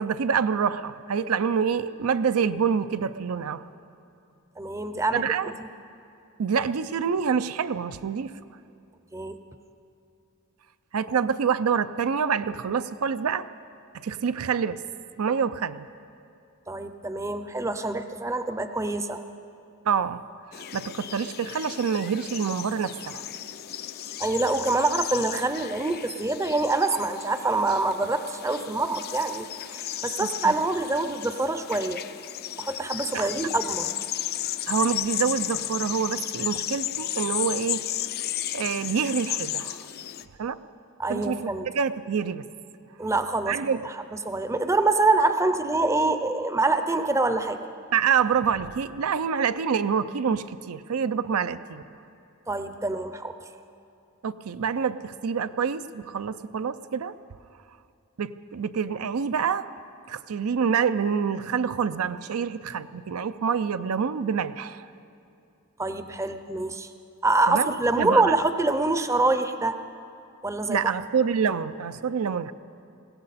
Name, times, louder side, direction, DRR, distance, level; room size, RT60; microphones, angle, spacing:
voice 1, 0.0-3.7 5.1-5.5 6.4-8.3 10.9-13.5 14.0-14.8 15.2-15.9 19.8-20.2 20.5-23.3 30.2-30.5 33.1-33.3 34.7-37.8 38.5-39.9 40.4-40.6 41.1-42.4 43.5-43.8 47.9-51.8 54.2-57.1 58.2-59.7 60.1-64.9 67.5-67.7 68.0-68.3 70.7-72.5, right 6 dB, 80° right, 12 dB, 0.5 m, -26 dB
voice 2, 4.6-5.7 9.1-9.4 16.7-19.3 24.2-32.0 32.6-33.9 41.0-41.7 43.0-43.6 43.8-44.0 44.2-47.6 52.5-53.3 65.8-66.9 67.2-69.8 70.4-70.9, right 2 dB, 15° right, 9 dB, 0.5 m, -25 dB
sound 1, 20.5-40.2, left 12 dB, 45° left, 0.4 m, -34 dB
21.0 x 16.5 x 4.2 m, 2.6 s
head